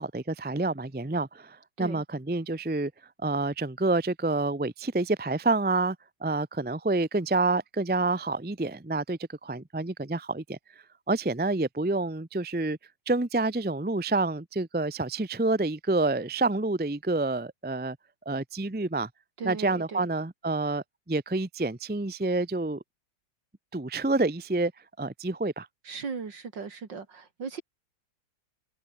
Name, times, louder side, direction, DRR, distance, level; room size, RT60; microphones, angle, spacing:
voice 1, 0.0-2.9 3.2-6.0 6.2-10.6 11.1-12.8 13.1-18.0 18.2-19.1 19.4-22.8 23.7-24.7 25.0-25.7, right 2 dB, 10° right, 0.7 m, -28 dB
voice 2, 19.4-20.0 25.8-27.6, right 5 dB, 60° right, 3.2 m, -37 dB
omnidirectional pair, 2.2 m